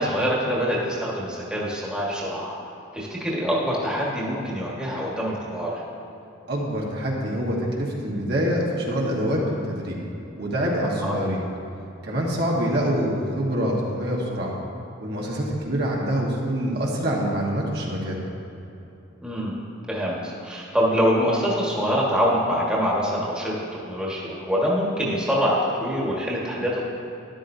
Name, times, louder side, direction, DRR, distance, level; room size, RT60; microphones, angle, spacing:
voice 1, 0.0-2.6 2.9-5.8 11.0-11.2 19.2-19.5 19.9-23.5 23.8-26.8, equal, 5° right, -5 dB, 1.5 m, -25 dB
voice 2, 6.5-10.0 10.3-11.4 12.0-14.5 15.0-18.2, equal, 50° right, -3 dB, 1.4 m, -25 dB
13.0 x 11.5 x 2.7 m, 2.9 s
head